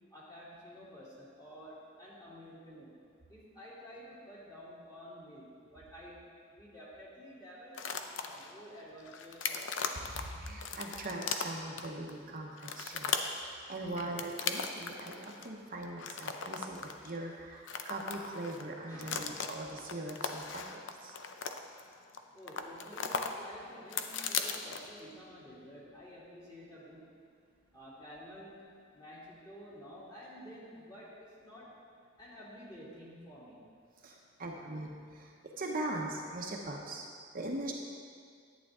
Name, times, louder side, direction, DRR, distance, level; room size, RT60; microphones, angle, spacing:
voice 1, 0.1-3.0 3.3-10.0 18.9-19.5 22.3-27.1 27.7-28.5 28.9-31.7 32.2-33.6, equal, 20° left, -8 dB, 2.8 m, -51 dB
sound 1, 7.7-8.5 9.0-12.1 12.6-13.4 13.9-15.5 15.8-17.2 17.5-18.7 19.0-22.2 22.5-23.3 23.6-25.0, left 6 dB, 75° left, 0.6 m, -37 dB
voice 2, 10.1-21.2 34.0-37.0 37.3-37.7, right 2 dB, 50° right, -1 dB, 0.9 m, -41 dB
11.5 x 9.1 x 3.7 m, 2.2 s
head